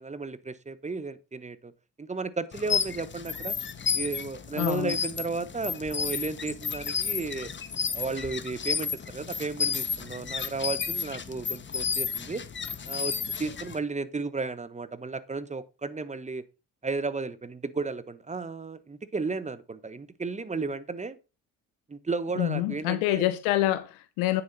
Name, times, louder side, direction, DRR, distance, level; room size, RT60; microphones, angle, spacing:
voice 1, 0.0-1.7 2.0-3.5 3.9-7.5 7.9-12.4 12.8-16.4 16.8-21.2 21.9-23.2, right 4 dB, 20° right, 1.2 m, -34 dB
sound 1, 2.5-13.8, left 6 dB, 35° left, 1.2 m, -32 dB
voice 2, 4.6-5.0 22.4-24.4, left 15 dB, 85° left, 0.7 m, -26 dB
9.5 x 7.5 x 4.2 m
supercardioid pair, 65°, 33 cm